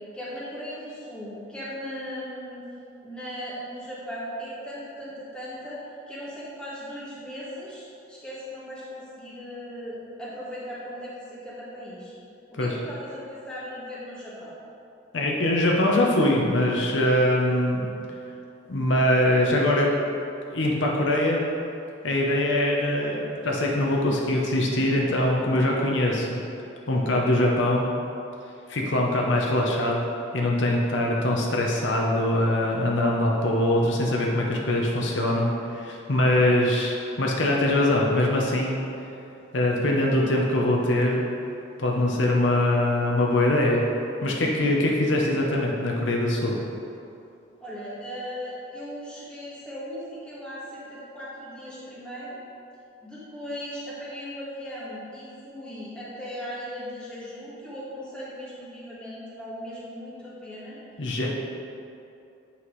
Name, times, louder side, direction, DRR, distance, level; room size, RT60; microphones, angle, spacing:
voice 1, 0.1-2.7 3.0-5.8 6.1-12.1 12.5-14.5 47.6-52.4 53.0-60.8, equal, 5° left, -9 dB, 1.6 m, -38 dB
voice 2, 15.1-17.9 18.7-19.9 20.5-21.4 22.0-26.4 26.9-27.9 28.7-30.0 30.3-38.8 39.5-41.3 41.8-43.8 44.2-46.6 61.0-61.3, left 1 dB, 70° left, -2 dB, 0.8 m, -23 dB
8.4 x 5.7 x 3.2 m, 2.7 s
head